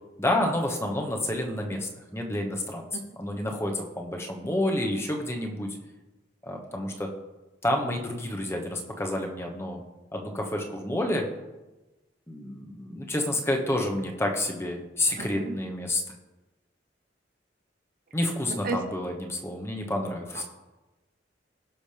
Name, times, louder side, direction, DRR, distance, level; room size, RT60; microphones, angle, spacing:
voice 1, 0.2-2.8 3.2-5.8 6.4-7.1 7.6-9.8 10.1-11.3 12.3-16.0 18.1-20.4, left 1 dB, 15° left, 2 dB, 1.2 m, -29 dB
voice 2, 15.2-15.6 18.5-18.9 20.3-20.4, right 2 dB, 50° right, 8 dB, 0.7 m, -33 dB
17.0 x 6.2 x 3.4 m, 1.1 s
head